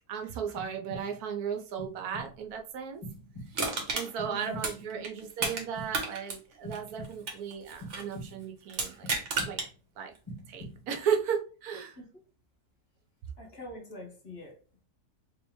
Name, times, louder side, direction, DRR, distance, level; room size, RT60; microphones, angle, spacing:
voice 1, 0.1-3.0 3.5-9.1 9.5-9.6 10.0-10.1 10.5-12.0, right 7 dB, 85° right, 1.2 m, -35 dB
sound 1, 0.6-1.3 1.8-2.5 3.0-3.8 4.2-5.0 5.4-6.2 6.6-7.4 7.8-8.6 9.0-9.8 10.2-11.1, equal, 20° left, 1.6 m, -45 dB
Crushing, 3.5-5.6 5.9-8.1 8.7-9.7 10.2-10.3, right 4 dB, 55° right, 1.2 m, -33 dB
voice 2, 4.2-5.0 12.0-12.1 13.4-14.6, left 1 dB, 50° left, 1.1 m, -44 dB
3.7 x 3.1 x 3.0 m
omnidirectional pair, 1.6 m